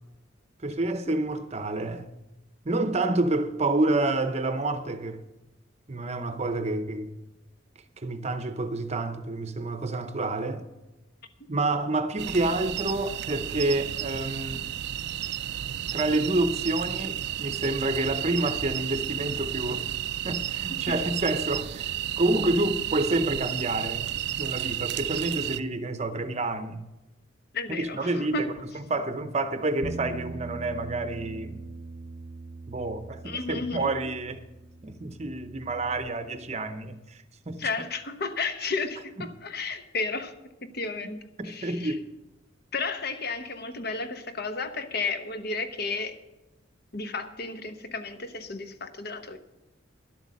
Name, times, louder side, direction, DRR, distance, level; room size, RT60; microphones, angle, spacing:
voice 1, 0.6-2.1 2.6-5.2 5.9-7.1 8.0-10.7 11.5-14.6 15.9-19.9 20.2-26.9 27.7-28.5 28.9-31.6 32.7-34.4 34.8-37.2 37.5-37.7 41.0-42.0, right 2 dB, 35° right, 0.7 m, -28 dB
sound 1, 12.2-25.6, right 12 dB, 60° right, 0.4 m, -32 dB
voice 2, 27.5-28.6 33.2-33.9 37.6-40.3 40.7-41.2 41.4-42.0 42.7-46.2 46.9-49.4, left 4 dB, 50° left, 1.0 m, -33 dB
Bass guitar, 29.8-36.1, right 3 dB, 90° right, 0.8 m, -41 dB
11.5 x 8.2 x 6.3 m
head